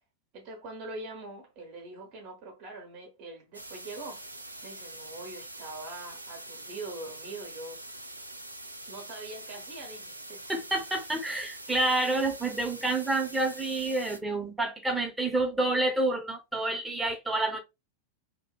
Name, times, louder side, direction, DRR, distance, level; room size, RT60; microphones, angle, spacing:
voice 1, 0.3-4.2 4.6-7.8 8.9-10.5, right 2 dB, 40° right, 0.7 m, -43 dB
sound 1, 3.5-14.2, right 1 dB, 85° right, 0.3 m, -44 dB
voice 2, 10.5-17.6, right 2 dB, 5° right, 0.6 m, -28 dB
2.6 x 2.1 x 2.2 m
figure-of-eight pair, 90°, 0 cm